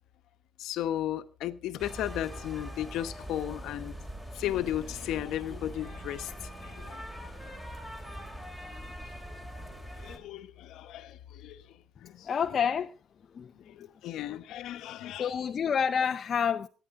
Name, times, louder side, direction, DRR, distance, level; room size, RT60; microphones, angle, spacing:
voice 1, 0.6-4.0 4.3-6.3 6.6-7.0 10.0-11.6 12.0-12.3 13.7-15.3, left 12 dB, 90° left, 1.1 m, -35 dB
sound 1, 1.8-10.2, equal, 10° right, 2.9 m, -42 dB
voice 2, 12.2-12.9 13.3-13.5 15.2-16.7, left 7 dB, 40° left, 0.6 m, -28 dB
23.0 x 10.0 x 3.7 m
cardioid pair, 150°, 0 cm